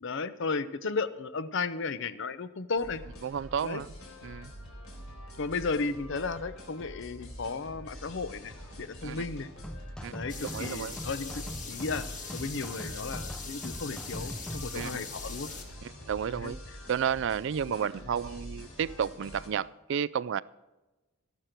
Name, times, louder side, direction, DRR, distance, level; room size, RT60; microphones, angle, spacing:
voice 1, 0.0-3.0 3.6-3.8 5.4-9.5 10.1-12.1 12.3-15.5 16.4-16.5, left 4 dB, 60° left, 14 dB, 0.6 m, -34 dB
sound 1, 2.7-19.5, equal, 85° left, 3.7 m, -46 dB
voice 2, 3.2-3.9 4.2-4.5 9.0-9.3 10.0-10.1 10.4-11.0 14.7-15.1 15.8-16.6 16.9-20.4, right 8 dB, 60° right, 20 dB, 0.3 m, -32 dB
sound 2, 9.6-15.0, equal, 5° left, 0.6 m, -42 dB
sound 3, 10.3-15.6, left 5 dB, 35° left, 1.7 m, -42 dB
13.5 x 11.5 x 4.5 m, 1.1 s
head